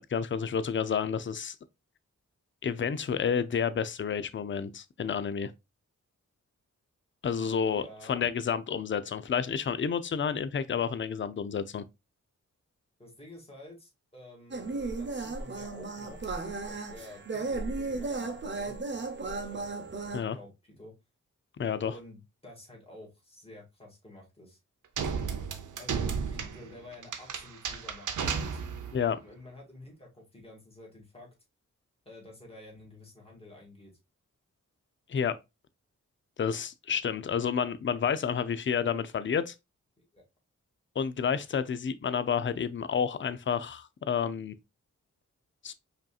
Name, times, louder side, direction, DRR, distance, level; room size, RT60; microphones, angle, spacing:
voice 1, 0.1-1.5 2.6-5.5 7.2-11.8 20.1-20.4 21.6-21.9 28.9-29.2 35.1-35.4 36.4-39.5 41.0-44.5 45.6-45.7, left 7 dB, 40° left, 0.4 m, -30 dB
voice 2, 7.5-8.3 13.0-16.2 16.7-18.7 19.2-20.9 21.8-24.6 25.8-28.6 29.2-31.3 32.1-33.9 40.0-40.2, left 1 dB, 20° left, 1.9 m, -50 dB
sound 1, 14.5-20.2, right 3 dB, 35° right, 0.8 m, -35 dB
sound 2, 25.0-29.1, right 6 dB, 80° right, 0.6 m, -33 dB
5.0 x 2.8 x 2.3 m
cardioid pair, 60°, 31 cm